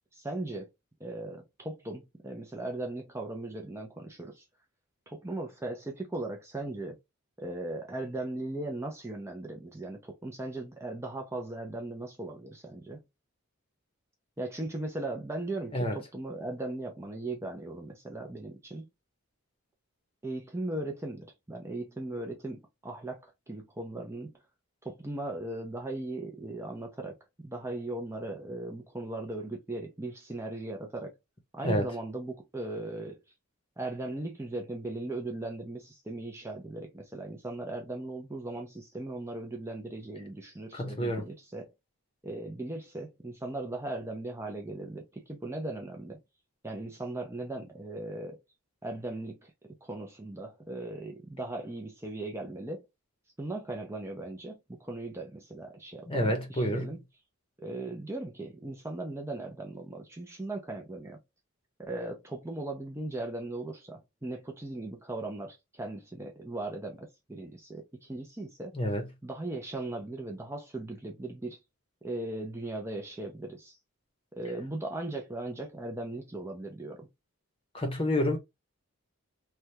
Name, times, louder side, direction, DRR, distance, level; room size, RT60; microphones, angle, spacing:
voice 1, 0.1-0.7 1.0-4.4 5.1-7.0 7.4-13.0 14.4-18.9 20.2-24.3 24.8-27.2 27.4-31.1 31.5-33.2 33.8-41.7 42.2-46.2 46.6-48.4 48.8-49.5 49.8-52.8 53.4-57.0 57.6-61.2 61.8-68.7 69.2-71.6 72.0-73.8 74.3-77.1, right 2 dB, 10° right, 0.5 m, -38 dB
voice 2, 40.7-41.3 56.1-56.9 68.7-69.1 77.7-78.4, equal, 25° left, 0.8 m, -29 dB
3.3 x 2.3 x 2.7 m
head